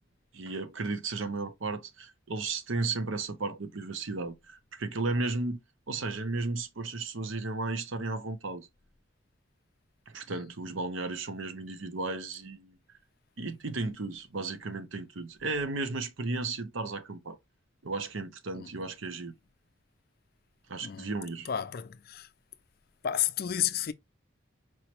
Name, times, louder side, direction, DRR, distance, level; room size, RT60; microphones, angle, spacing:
voice 1, 0.3-5.6 5.9-8.7 10.1-12.8 13.4-17.4 17.8-19.3 20.7-21.5, right 3 dB, 80° right, 0.8 m, -34 dB
voice 2, 21.5-22.3 23.0-23.9, left 10 dB, 50° left, 0.4 m, -31 dB
4.7 x 3.0 x 2.9 m
head